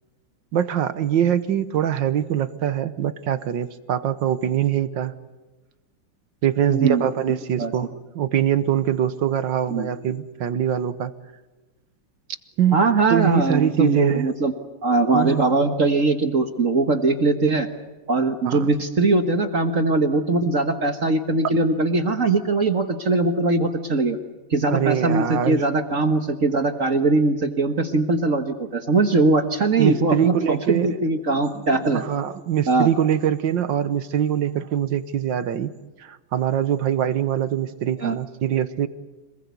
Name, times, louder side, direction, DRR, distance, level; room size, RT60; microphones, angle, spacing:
voice 1, 0.5-5.1 6.4-11.1 12.6-14.3 15.1-15.4 18.4-18.7 24.7-25.6 29.8-31.0 31.5-35.7 36.0-38.9, right 10 dB, 65° right, 13 dB, 1.6 m, -23 dB
voice 2, 6.7-7.0 7.6-7.7 9.7-9.9 12.7-14.5 14.8-17.7 18.1-24.2 24.5-32.0 32.7-32.9 38.0-38.2, right 3 dB, 40° right, 7 dB, 1.6 m, -21 dB
27.0 x 20.0 x 8.3 m, 1.2 s
omnidirectional pair, 2.4 m